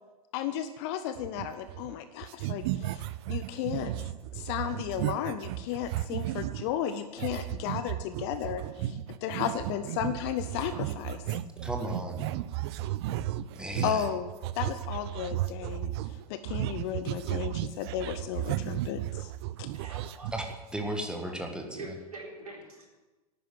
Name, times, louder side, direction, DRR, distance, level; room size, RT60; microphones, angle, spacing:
voice 1, 0.3-3.9 4.3-11.4 13.8-14.3 14.5-19.3 19.6-19.7, left 10 dB, 45° left, 12 dB, 0.8 m, -34 dB
sound 1, 1.2-2.0 2.2-6.7 7.2-20.9, right 13 dB, 40° right, 0.5 m, -34 dB
voice 2, 11.6-12.2 13.5-14.0 20.3-20.5 20.7-21.9, right 1 dB, 5° right, 4 dB, 1.6 m, -35 dB
voice 3, 19.8-20.3 21.2-22.8, right 2 dB, 75° right, -2 dB, 4.0 m, -44 dB
11.5 x 9.3 x 8.0 m, 1.1 s
figure-of-eight pair, 95°, 20 cm